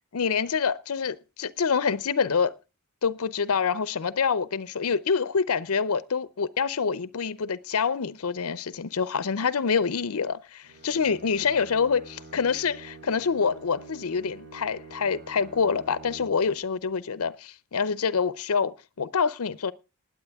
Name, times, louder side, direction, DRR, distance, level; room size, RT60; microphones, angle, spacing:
voice 1, 0.1-2.5 3.0-19.7, left 5 dB, 70° left, 0.6 m, -26 dB
Bowed string instrument, 10.6-16.6, right 3 dB, 50° right, 2.6 m, -47 dB
20.0 x 8.5 x 3.5 m
head